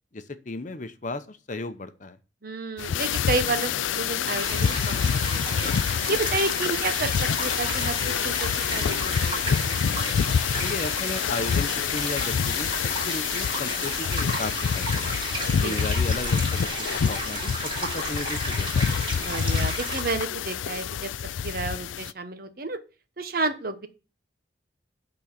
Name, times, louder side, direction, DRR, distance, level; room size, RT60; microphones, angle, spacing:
voice 1, 0.1-2.2 10.6-15.1 15.5-19.0, left 2 dB, 40° left, 10 dB, 0.8 m, -35 dB
voice 2, 2.4-5.7 6.1-9.8 15.6-15.8 19.2-21.1 21.4-22.8 23.2-23.9, right 3 dB, 50° right, 8 dB, 1.1 m, -31 dB
sound 1, 2.8-22.1, left 8 dB, 85° left, 0.4 m, -27 dB
sound 2, 4.4-20.0, right 1 dB, 30° right, 5.5 m, -33 dB
10.5 x 4.0 x 7.3 m, 0.35 s
head